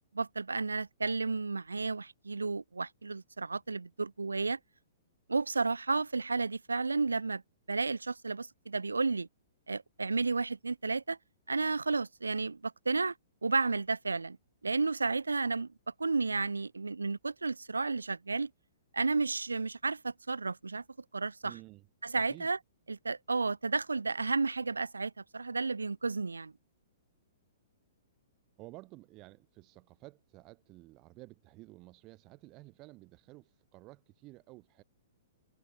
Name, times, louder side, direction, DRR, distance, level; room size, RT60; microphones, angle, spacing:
voice 1, 0.1-4.6 5.3-7.4 7.7-9.3 9.7-11.2 11.5-13.1 13.4-14.4 14.6-15.7 16.0-18.5 18.9-20.8 21.1-21.5 22.0-22.6 22.9-26.5, right 4 dB, 75° right, 0.5 m, -32 dB
voice 2, 21.4-21.9 22.1-22.5 28.6-34.8, right 21 dB, 30° right, 7.8 m, -53 dB
figure-of-eight pair, 110°, 0 cm